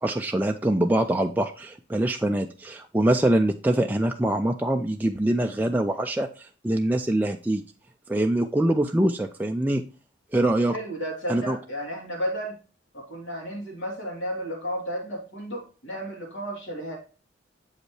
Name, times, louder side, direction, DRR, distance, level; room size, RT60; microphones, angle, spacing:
voice 1, 0.0-6.3 6.6-7.6 8.1-9.8 10.3-10.8 11.3-11.6, right 1 dB, 10° right, 3 dB, 0.3 m, -24 dB
voice 2, 10.7-12.6 12.9-17.0, equal, 70° left, -1 dB, 3.0 m, -33 dB
7.3 x 5.2 x 3.2 m, 0.35 s
head